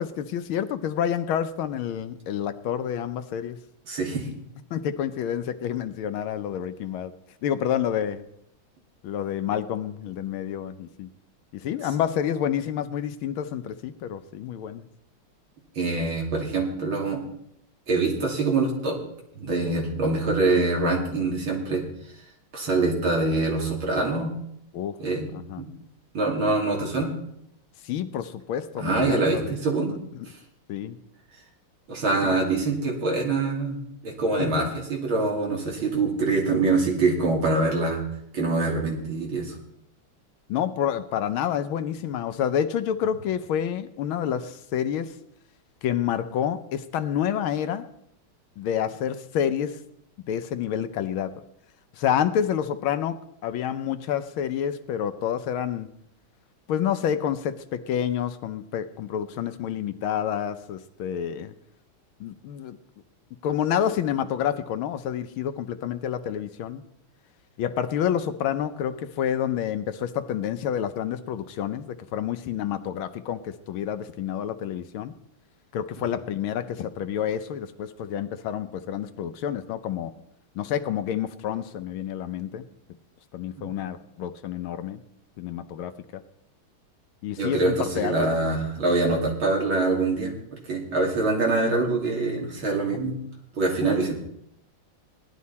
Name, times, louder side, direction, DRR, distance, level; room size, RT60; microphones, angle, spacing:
voice 1, 0.0-3.6 4.7-7.1 7.4-8.2 9.0-11.1 11.5-14.9 24.7-25.0 25.3-25.6 27.8-29.6 30.7-31.0 32.2-32.5 34.4-34.7 40.5-45.1 45.8-47.9 48.6-49.8 50.3-51.3 51.9-55.9 56.7-61.5 62.2-62.8 63.4-66.8 67.6-75.1 75.7-80.1 80.5-82.6 83.3-85.0 85.4-86.2 87.2-88.3 93.8-93.9, left 9 dB, 75° left, 10 dB, 1.5 m, -28 dB
voice 2, 3.9-4.3 15.7-17.2 17.9-19.0 19.3-21.9 22.5-24.3 25.0-25.3 25.6-25.7 26.1-27.1 28.8-29.9 31.9-38.0 38.3-39.5 83.6-83.7 87.4-90.3 90.7-93.2 93.5-94.1, right 3 dB, 70° right, -1 dB, 3.5 m, -24 dB
17.5 x 11.5 x 4.2 m, 0.75 s
omnidirectional pair, 2.3 m